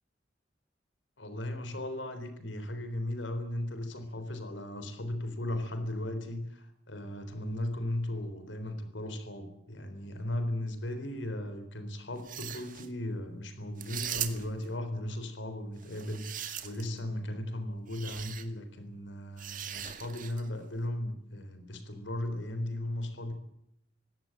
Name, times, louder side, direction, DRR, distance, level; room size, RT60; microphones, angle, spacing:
voice 1, 1.2-23.3, left 1 dB, 85° left, 8 dB, 3.9 m, -36 dB
sound 1, 12.2-12.9 13.8-14.7 15.8-17.0 17.9-18.4 19.4-20.5, right 10 dB, 45° right, 2.0 m, -39 dB
20.5 x 16.5 x 8.9 m, 0.75 s
head